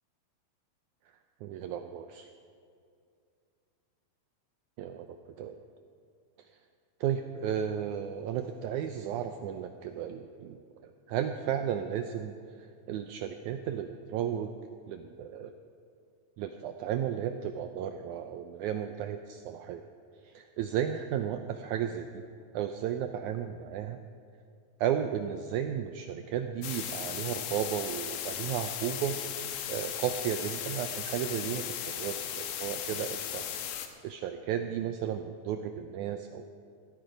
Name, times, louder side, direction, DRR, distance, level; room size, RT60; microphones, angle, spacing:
voice 1, 1.4-2.3 4.8-5.5 7.0-12.3 12.6-14.5 14.9-15.6 16.4-19.8 20.2-22.2 22.5-24.0 24.8-29.2 29.7-33.5 34.0-36.5, right 9 dB, 90° right, 7 dB, 1.7 m, -34 dB
sound 1, 26.6-33.9, left 10 dB, 80° left, 2.6 m, -37 dB
17.0 x 13.0 x 5.1 m, 2.4 s
omnidirectional pair, 4.1 m